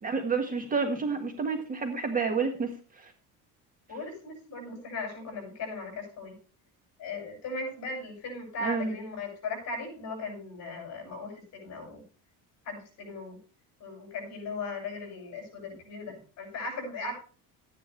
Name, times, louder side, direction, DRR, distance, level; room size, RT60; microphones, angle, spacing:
voice 1, 0.0-3.1 8.6-9.0, right 4 dB, 25° right, 5 dB, 1.6 m, -30 dB
voice 2, 3.9-6.3 7.0-12.0 12.7-13.4 13.8-17.1, left 3 dB, 50° left, 3 dB, 7.2 m, -38 dB
13.5 x 10.0 x 3.2 m, 0.37 s
cardioid pair, 150°, 35 cm